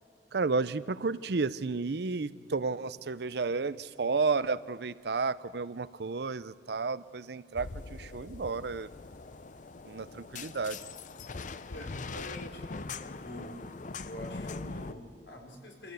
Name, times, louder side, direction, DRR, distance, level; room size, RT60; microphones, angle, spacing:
voice 1, 0.3-8.9 9.8-10.8, right 4 dB, 65° right, 16 dB, 0.6 m, -32 dB
sound 1, 7.5-14.9, left 4 dB, 45° left, 0.6 m, -42 dB
voice 2, 11.7-13.6 14.0-15.9, equal, 90° left, 1 dB, 3.9 m, -45 dB
26.5 x 15.5 x 8.2 m, 2.4 s
head